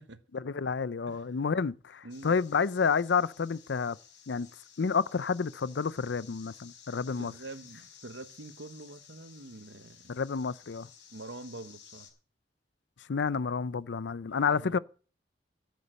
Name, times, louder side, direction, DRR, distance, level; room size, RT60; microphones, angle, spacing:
voice 1, 0.3-4.0 4.3-4.5 4.8-7.3 10.1-10.9 13.1-14.8, left 5 dB, 70° left, 0.5 m, -30 dB
voice 2, 2.0-2.3 7.2-10.1 11.1-12.1 14.3-14.8, right 2 dB, 85° right, 1.2 m, -46 dB
sound 1, 2.1-12.1, left 8 dB, 85° left, 4.7 m, -55 dB
12.5 x 8.4 x 6.6 m
head